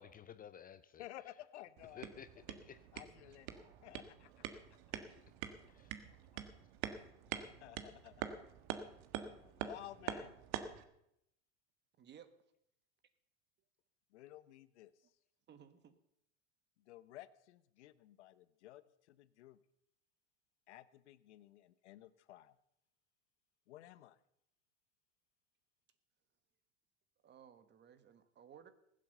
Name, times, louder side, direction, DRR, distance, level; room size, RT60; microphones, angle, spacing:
voice 1, 0.0-1.3 1.9-3.0 3.5-3.7 4.9-5.3 5.7-6.1, left 8 dB, 25° left, 14 dB, 0.6 m, -55 dB
voice 2, 1.0-2.0 2.9-4.8 6.3-6.4 7.3-8.4 9.2-10.3 14.1-15.1 16.8-19.6 20.7-22.6 23.7-24.2, left 14 dB, 85° left, 16 dB, 0.9 m, -55 dB
sound 1, 1.8-10.8, right 9 dB, 55° right, 1.6 m, -46 dB
voice 3, 12.0-12.3 15.5-16.0 27.2-28.7, right 8 dB, 30° right, 11 dB, 1.5 m, -59 dB
19.5 x 7.8 x 6.7 m, 0.78 s
supercardioid pair, 115°, 33 cm